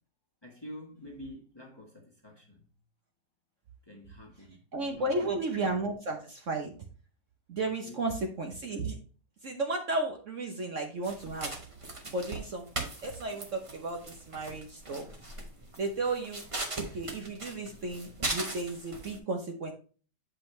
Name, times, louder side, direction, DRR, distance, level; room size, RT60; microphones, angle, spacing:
voice 1, 0.4-2.7 3.9-5.3 7.8-8.0, left 1 dB, 15° left, 1.2 m, -48 dB
voice 2, 4.7-6.7 7.5-9.0 9.4-11.6 12.1-15.1 15.8-16.4 16.8-19.7, right 2 dB, 55° right, 1.1 m, -34 dB
sound 1, 11.0-19.2, right 2 dB, 25° right, 0.9 m, -39 dB
8.0 x 5.2 x 3.2 m
omnidirectional pair, 1.8 m